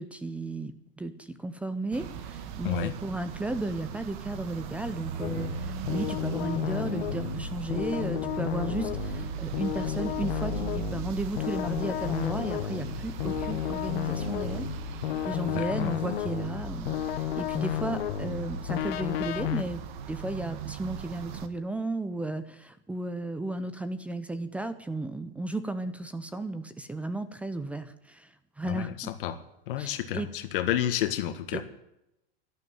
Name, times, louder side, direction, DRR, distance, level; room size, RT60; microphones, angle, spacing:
voice 1, 0.0-14.7 15.2-29.1 29.8-30.3 31.5-31.6, right 2 dB, 5° right, 12 dB, 0.5 m, -34 dB
sound 1, 1.9-21.5, right 8 dB, 55° right, 1.7 m, -39 dB
voice 2, 2.6-2.9 15.4-15.9 28.6-29.4 29.7-31.6, left 11 dB, 65° left, 9 dB, 1.6 m, -30 dB
sound 2, 5.2-19.6, left 11 dB, 90° left, 1.0 m, -32 dB
12.5 x 11.5 x 9.2 m, 0.83 s
supercardioid pair, 165°, 29 cm